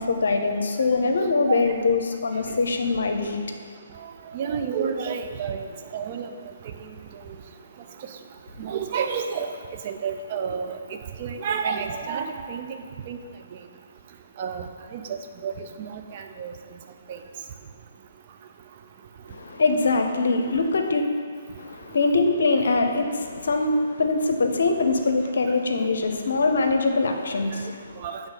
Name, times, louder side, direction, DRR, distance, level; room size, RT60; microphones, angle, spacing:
voice 1, 0.0-3.4 19.3-21.0 21.6-28.0, left 3 dB, 65° left, 5 dB, 0.7 m, -23 dB
voice 2, 1.2-1.6 2.5-2.6 4.0-5.7 5.9-6.3 6.6-6.7 8.6-9.5 9.8-10.8 11.2-13.2 14.4-14.6 14.9-16.5 17.1-17.2 28.0-28.2, right 6 dB, 40° right, 5 dB, 0.5 m, -30 dB
7.2 x 3.5 x 5.3 m, 2.1 s
figure-of-eight pair, 135°, 0 cm